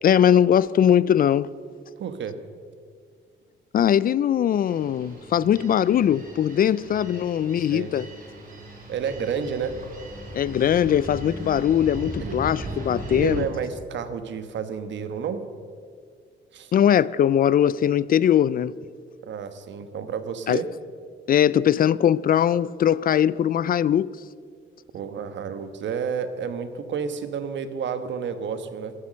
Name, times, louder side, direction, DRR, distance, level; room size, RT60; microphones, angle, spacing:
voice 1, 0.0-1.5 3.7-8.1 10.3-13.4 16.7-18.8 20.5-20.6 21.3-24.2, left 9 dB, 45° left, 0.4 m, -20 dB
voice 2, 2.0-2.4 7.6-7.9 8.9-9.8 12.2-12.4 13.1-15.4 16.5-16.7 19.2-20.7 24.9-28.9, right 6 dB, 65° right, 1.2 m, -30 dB
sound 1, 4.7-13.4, right 2 dB, 45° right, 4.5 m, -38 dB
14.5 x 11.5 x 6.4 m
cardioid pair, 90°, 20 cm